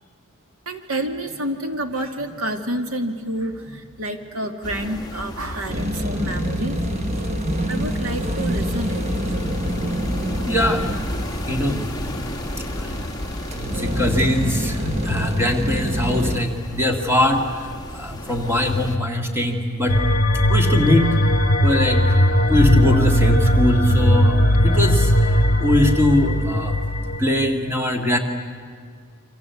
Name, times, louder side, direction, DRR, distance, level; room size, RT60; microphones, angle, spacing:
voice 1, 0.7-6.8 7.7-9.1, right 1 dB, 75° right, 6 dB, 2.2 m, -28 dB
sound 1, 4.6-19.0, left 1 dB, 15° left, 1.4 m, -33 dB
sound 2, 5.7-16.4, equal, 30° right, 1.2 m, -26 dB
voice 2, 10.5-10.8 11.5-11.9 12.8-12.9 13.7-20.0 20.5-21.1 21.6-22.1 22.5-26.8 27.2-28.2, left 1 dB, 10° right, 3 dB, 2.0 m, -21 dB
sound 3, 19.9-27.2, equal, 40° left, 1.5 m, -18 dB
28.5 x 25.5 x 8.2 m, 2.1 s
head